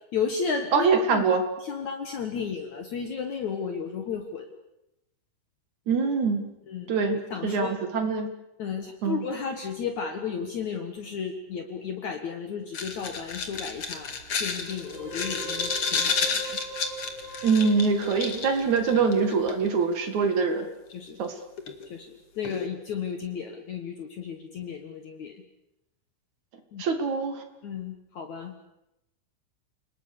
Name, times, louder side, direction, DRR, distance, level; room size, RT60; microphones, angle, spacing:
voice 1, 0.1-1.2 1.6-4.5 6.7-6.9 7.3-7.7 8.6-16.6 20.9-21.2 21.9-25.4 26.7-26.8 27.6-28.7, left 6 dB, 75° left, 5 dB, 1.7 m, -33 dB
voice 2, 0.7-1.4 5.9-6.5 6.9-8.3 9.0-9.3 17.4-20.7 21.2-21.3 26.8-27.4, right 5 dB, 50° right, 7 dB, 2.4 m, -24 dB
sound 1, 12.7-19.7 20.9-21.0 21.6-21.9 22.4-22.7, left 5 dB, 55° left, 1.5 m, -31 dB
sound 2, 12.8-19.5, right 2 dB, 30° right, 7.6 m, -42 dB
30.0 x 20.0 x 6.8 m, 0.88 s
omnidirectional pair, 5.8 m